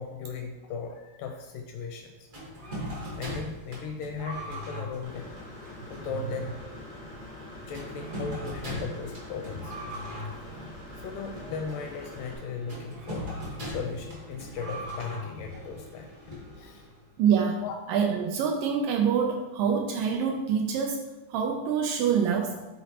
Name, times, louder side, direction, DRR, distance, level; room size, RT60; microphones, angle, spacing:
voice 1, 0.0-2.3 3.1-5.3 5.9-6.6 7.7-9.8 11.0-13.3 13.7-16.9 17.6-17.8, left 5 dB, 80° left, 4 dB, 2.0 m, -37 dB
sound 1, 2.3-17.0, equal, 60° right, 0.8 m, -40 dB
Engine / Mechanisms, 5.0-12.3, left 2 dB, 10° left, 0.5 m, -45 dB
voice 2, 17.2-17.6 17.9-21.0 21.3-22.5, right 7 dB, 80° right, 2 dB, 2.0 m, -25 dB
8.2 x 4.0 x 2.9 m, 1.1 s
omnidirectional pair, 4.2 m